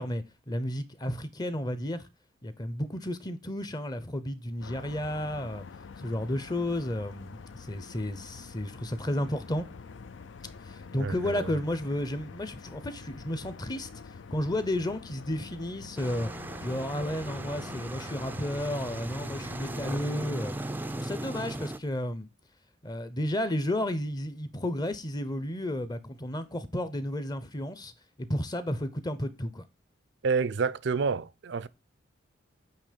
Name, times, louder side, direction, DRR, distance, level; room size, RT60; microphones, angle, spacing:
voice 1, 0.0-2.1 2.4-5.6 6.0-9.7 10.7-13.9 14.3-16.3 16.6-20.5 21.0-22.3 22.8-27.9 28.2-29.6, left 1 dB, 20° left, 0.7 m, -32 dB
sound 1, 4.6-20.1, left 5 dB, 70° left, 0.5 m, -47 dB
voice 2, 11.0-11.6 30.2-31.7, right 5 dB, 65° right, 0.5 m, -29 dB
sound 2, 16.0-21.8, right 1 dB, 10° right, 0.4 m, -37 dB
9.0 x 3.0 x 5.0 m
head